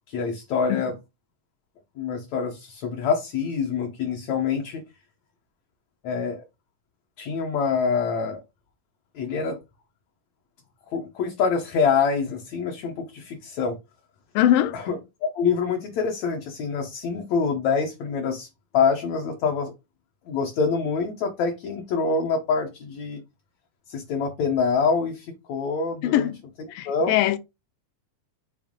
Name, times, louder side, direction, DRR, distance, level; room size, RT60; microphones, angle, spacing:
voice 1, 0.1-1.0 2.0-4.8 6.0-6.4 7.2-8.4 9.2-9.6 10.9-13.8 14.7-18.5 18.7-19.7 20.3-23.2 23.9-26.3 26.9-27.1, left 5 dB, 65° left, 2.0 m, -25 dB
voice 2, 14.4-14.8 26.0-26.4 26.7-27.4, left 12 dB, 85° left, 2.3 m, -21 dB
7.2 x 2.7 x 5.1 m
omnidirectional pair, 3.9 m